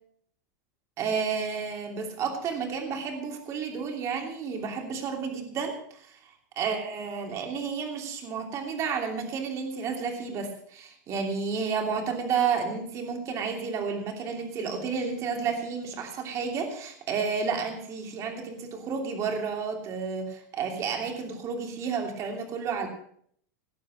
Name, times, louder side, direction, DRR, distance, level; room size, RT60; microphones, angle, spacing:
voice 1, 1.0-6.1 6.6-22.9, right 5 dB, 30° right, 3 dB, 2.9 m, -31 dB
18.5 x 7.5 x 6.4 m, 0.65 s
supercardioid pair, 150°, 10 cm